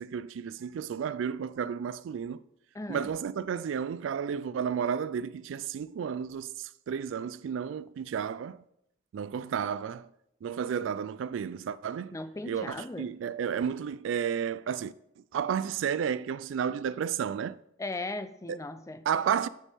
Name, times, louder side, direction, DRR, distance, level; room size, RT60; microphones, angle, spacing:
voice 1, 0.0-2.4 2.9-8.6 9.1-10.1 10.4-12.2 12.4-14.9 15.3-17.6 18.5-18.6 19.1-19.5, right 7 dB, 85° right, 0.3 m, -32 dB
voice 2, 2.7-3.1 12.1-13.1 17.8-19.0, left 2 dB, 15° left, 0.4 m, -37 dB
9.8 x 3.6 x 4.2 m
head